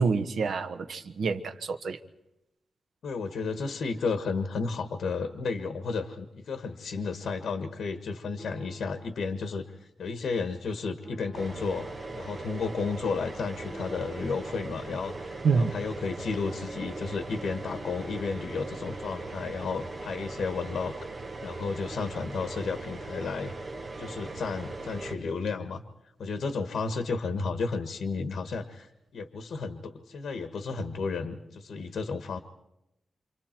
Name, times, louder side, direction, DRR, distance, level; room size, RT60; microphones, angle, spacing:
voice 1, 0.0-2.0 15.4-15.7, right 5 dB, 85° right, 9 dB, 1.3 m, -27 dB
voice 2, 3.0-11.9 12.1-20.9 21.4-23.5 24.0-25.8 26.2-32.4, left 4 dB, 80° left, 8 dB, 1.4 m, -33 dB
sound 1, 8.4-9.2 11.0-11.9 13.7-14.6 16.4-19.1, equal, 10° right, 3.5 m, -48 dB
sound 2, 11.3-25.2, right 3 dB, 35° right, 1.7 m, -40 dB
28.5 x 26.5 x 4.5 m, 0.87 s
wide cardioid pair, 165°, 0 cm